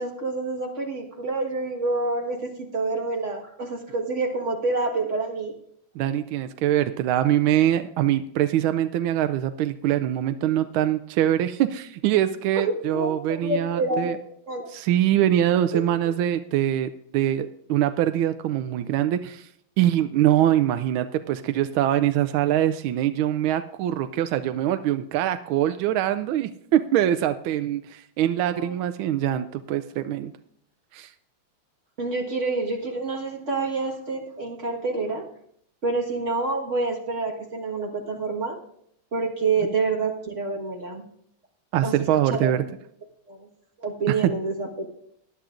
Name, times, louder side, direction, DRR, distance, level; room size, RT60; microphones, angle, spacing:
voice 1, 0.0-5.5 12.5-14.2 14.5-14.7 15.7-15.8 28.4-28.8 32.0-35.3 35.8-38.6 39.1-41.0 41.8-41.9 42.3-42.6 43.3-43.5 43.8-44.9, right 3 dB, 40° right, 0 dB, 1.7 m, -27 dB
voice 2, 6.0-14.2 14.7-19.5 19.8-30.3 30.9-31.1 41.7-42.6 44.1-44.3, right 11 dB, 85° right, 10 dB, 1.4 m, -23 dB
19.5 x 10.5 x 2.5 m, 0.69 s
omnidirectional pair, 2.2 m